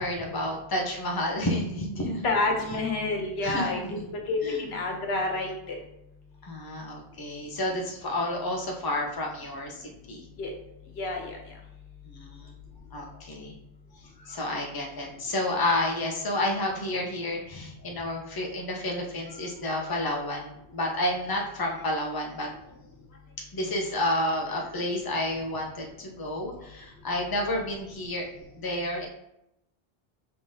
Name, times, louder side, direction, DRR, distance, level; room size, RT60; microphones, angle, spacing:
voice 1, 0.0-2.3 3.4-4.1 4.4-4.7 6.4-10.3 12.0-12.5 12.9-13.6 14.0-22.8 23.5-28.2 28.5-29.1, left 1 dB, 25° left, 0 dB, 0.6 m, -30 dB
voice 2, 2.2-4.0 4.3-5.8 10.4-10.5 11.0-11.4 27.5-27.6, left 2 dB, 90° left, 2 dB, 1.1 m, -29 dB
5.5 x 3.2 x 2.7 m, 0.83 s
omnidirectional pair, 1.0 m